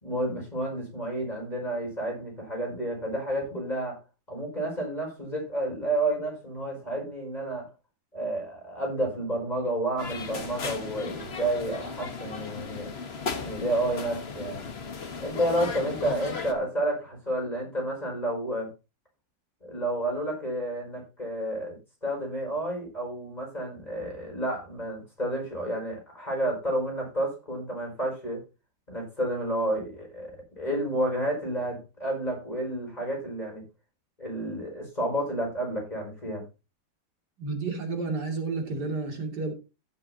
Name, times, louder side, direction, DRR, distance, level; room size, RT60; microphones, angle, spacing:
voice 1, 0.0-4.0 4.3-7.7 8.1-12.9 13.4-14.7 15.2-18.7 19.6-28.4 28.9-33.6 34.2-36.4, right 1 dB, 20° left, -1 dB, 5.4 m, -30 dB
sound 1, 10.0-16.5, left 4 dB, 35° left, 1.3 m, -36 dB
voice 2, 37.4-39.5, right 3 dB, 60° right, 3 dB, 3.3 m, -31 dB
16.5 x 7.7 x 2.8 m, 0.29 s
omnidirectional pair, 2.1 m